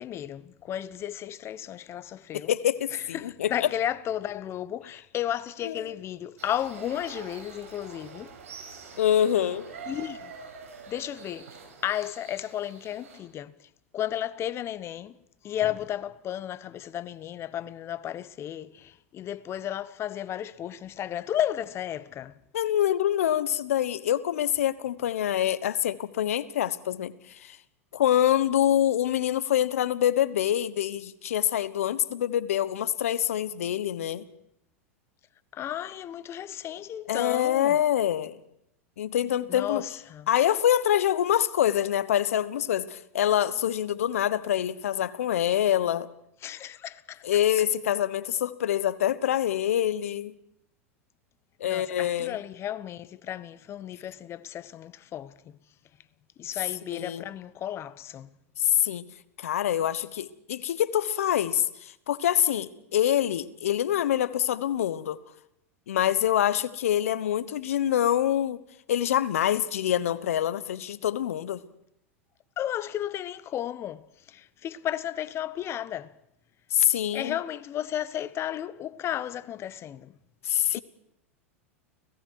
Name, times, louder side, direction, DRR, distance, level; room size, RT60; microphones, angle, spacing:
voice 1, 0.0-2.5 2.9-8.4 9.9-10.3 10.9-11.5 11.8-13.7 13.9-15.2 15.4-22.4 35.5-37.8 39.5-40.3 46.4-47.2 51.6-55.6 56.4-58.3 72.6-76.1 77.1-80.2 80.7-80.8, left 11 dB, 35° left, 1.1 m, -33 dB
voice 2, 2.3-3.7 5.6-5.8 9.0-9.7 22.5-27.6 27.9-34.2 37.1-38.4 39.0-39.8 40.3-46.1 47.2-50.3 51.6-52.4 56.9-57.2 58.6-59.0 59.4-65.2 65.9-68.6 68.9-71.6 76.7-77.3 80.4-80.8, left 11 dB, 75° left, 1.1 m, -25 dB
sound 1, 6.4-13.2, right 5 dB, 80° right, 6.5 m, -45 dB
30.0 x 18.0 x 4.7 m
hypercardioid pair, 100°, 8 cm